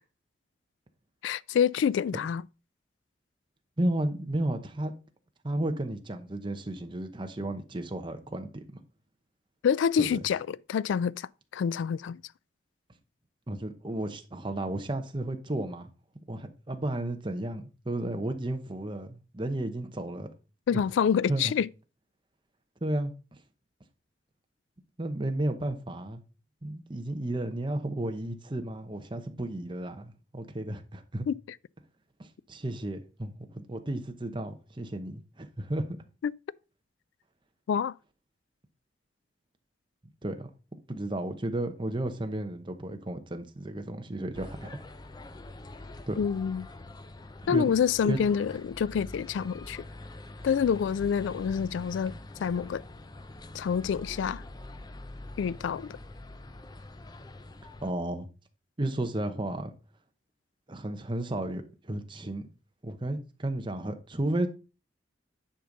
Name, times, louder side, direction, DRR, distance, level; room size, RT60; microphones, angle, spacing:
voice 1, 1.2-2.4 9.6-12.2 20.7-21.7 31.3-31.4 36.2-36.3 37.7-37.9 46.2-46.7 47.5-49.8 50.4-52.1 52.4-52.8 53.5-54.4 55.4-56.0, left 7 dB, 85° left, 0.3 m, -27 dB
voice 2, 3.8-4.9 5.4-8.6 10.0-10.2 13.5-15.9 16.1-20.3 20.7-20.8 21.3-21.5 22.8-23.1 25.0-26.2 26.6-31.3 32.5-36.0 40.2-40.5 40.9-44.8 46.1-46.2 47.5-47.7 48.0-48.2 57.8-58.3 58.8-59.7 60.7-62.5 62.8-64.5, right 1 dB, 25° right, 0.9 m, -33 dB
sound 1, 44.3-57.9, left 2 dB, 20° left, 0.5 m, -45 dB
10.0 x 5.1 x 3.9 m
head